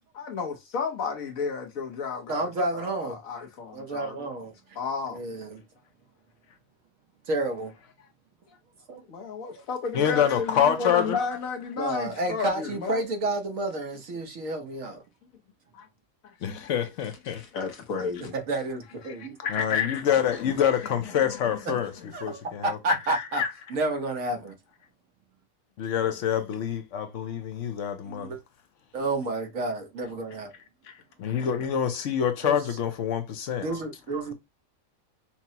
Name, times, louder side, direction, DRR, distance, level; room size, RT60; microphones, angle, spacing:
voice 1, 0.1-4.3 4.8-5.2 9.1-13.0 15.7-15.9 16.5-16.7 17.3-18.4 19.4-19.5 20.8-20.9 21.2-21.4 21.8-22.1, left 5 dB, 85° left, 1.4 m, -33 dB
voice 2, 2.3-3.2 3.7-4.5 5.1-5.6 7.3-7.7 8.9-9.0 11.8-15.0 18.3-19.4 22.1-23.4 23.7-24.5 28.0-28.4 28.9-30.5 32.4-32.6 33.6-34.3, right 2 dB, 75° right, 1.4 m, -30 dB
voice 3, 9.9-11.2 16.4-17.4 19.1-21.9 22.2-23.5 25.8-28.4 30.9-31.0 31.2-33.7, left 8 dB, 70° left, 1.0 m, -26 dB
5.9 x 2.1 x 2.8 m
omnidirectional pair, 1.4 m